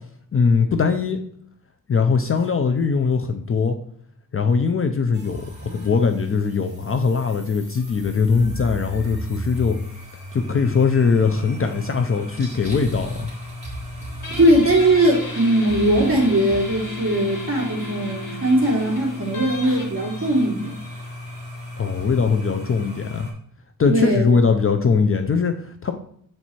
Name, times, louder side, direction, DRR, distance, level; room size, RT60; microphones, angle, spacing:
voice 1, 0.3-1.2 1.9-3.8 4.3-9.8 10.3-13.3 21.8-23.3 23.8-25.9, left 5 dB, 40° left, 5 dB, 0.5 m, -21 dB
sound 1, 5.1-23.3, equal, 20° right, 2.8 m, -36 dB
Guitar, 14.2-21.4, left 2 dB, 60° left, 2.0 m, -36 dB
voice 2, 14.3-20.7 23.9-24.4, right 1 dB, 35° right, -3 dB, 2.7 m, -19 dB
7.8 x 4.6 x 4.2 m, 0.63 s
wide cardioid pair, 170°, 36 cm